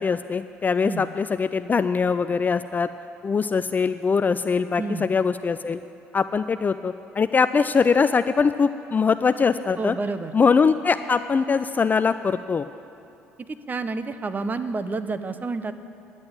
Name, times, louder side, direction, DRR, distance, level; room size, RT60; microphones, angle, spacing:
voice 1, 0.0-2.9 3.2-5.8 6.1-10.0 10.3-12.7, left 5 dB, 30° left, 11 dB, 0.4 m, -22 dB
voice 2, 9.8-10.3 13.7-15.7, right 3 dB, 30° right, 10 dB, 0.8 m, -29 dB
10.5 x 8.7 x 8.7 m, 2.7 s
hypercardioid pair, 55°, 6 cm